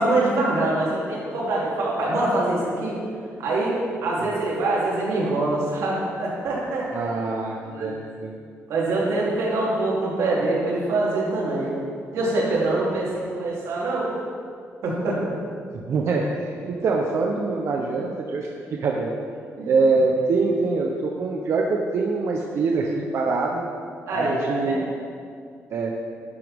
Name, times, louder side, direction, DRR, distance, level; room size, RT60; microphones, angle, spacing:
voice 1, 0.0-2.9 3.4-6.9 7.7-8.0 8.7-11.7 12.1-14.1 14.8-15.2 19.6-19.7 24.1-24.8, right 2 dB, 90° right, -5 dB, 3.2 m, -24 dB
voice 2, 6.9-8.4 15.7-19.1 19.6-23.7 24.1-25.0 25.7-25.9, right 3 dB, 60° right, 0 dB, 0.9 m, -24 dB
11.0 x 11.0 x 3.6 m, 2.2 s
cardioid pair, 135°, 5 cm